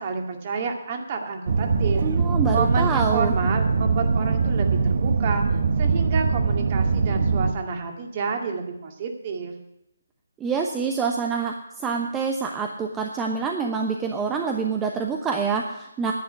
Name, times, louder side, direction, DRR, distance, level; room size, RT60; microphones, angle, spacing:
voice 1, 0.0-2.1 2.5-9.5, right 5 dB, 35° right, 3 dB, 2.2 m, -29 dB
sound 1, 1.5-7.5, right 4 dB, 55° right, 1.1 m, -22 dB
voice 2, 2.0-3.3 10.4-16.1, right 5 dB, 15° right, 2 dB, 0.9 m, -26 dB
10.5 x 8.7 x 9.8 m, 0.83 s
figure-of-eight pair, 145°, 0 cm